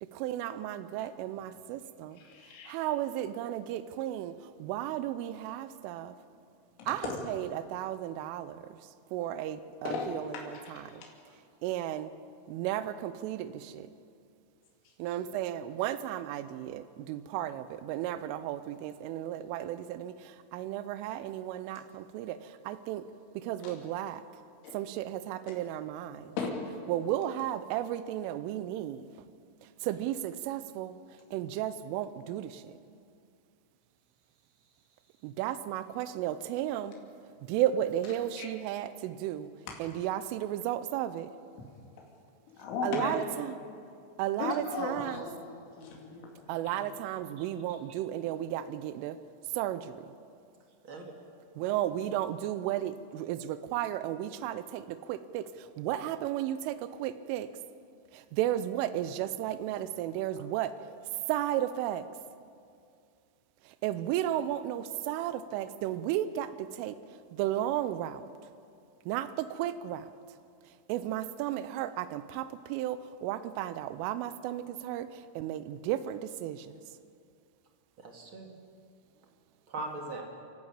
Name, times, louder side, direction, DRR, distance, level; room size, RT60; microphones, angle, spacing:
voice 1, 0.0-2.2 2.7-6.2 6.9-8.8 9.1-11.0 11.6-12.1 12.5-13.9 15.0-23.1 23.3-24.2 24.7-26.4 26.9-29.1 29.6-31.0 31.3-32.8 35.2-37.0 37.5-39.5 39.8-41.3 42.8-43.5 44.2-45.2 46.5-49.2 49.5-50.1 51.6-57.5 58.1-60.8 61.3-62.1 63.6-67.0 67.3-68.2 69.1-70.1 70.7-76.8, right 12 dB, 90° right, 13 dB, 3.2 m, -34 dB
voice 2, 2.2-2.7 6.8-7.2 9.8-10.1 10.3-11.1 14.8-14.9 23.6-23.7 24.6-24.7 26.4-26.5 38.4-38.5 42.6-43.7 44.4-46.3 46.6-46.8, left 4 dB, 75° left, -1 dB, 5.0 m, -37 dB
voice 3, 78.0-78.5 79.7-80.2, right 2 dB, 50° right, 2 dB, 1.6 m, -41 dB
29.0 x 12.0 x 8.7 m, 2.3 s
omnidirectional pair, 5.6 m